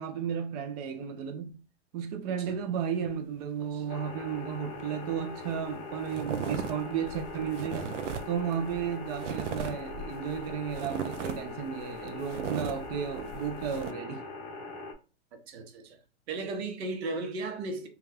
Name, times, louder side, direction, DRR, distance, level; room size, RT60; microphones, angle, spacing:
voice 1, 0.0-1.5 1.9-7.9 8.3-14.3, right 8 dB, 35° right, 0.4 m, -33 dB
sound 1, 3.9-14.9, left 3 dB, 35° left, 0.6 m, -42 dB
sound 2, 5.1-5.2 5.4-5.7 6.1-13.9, right 6 dB, 90° right, 0.5 m, -37 dB
voice 2, 15.5-16.0 16.3-17.9, right 3 dB, 60° right, 0.9 m, -35 dB
2.3 x 2.3 x 3.3 m
hypercardioid pair, 125°, 35 cm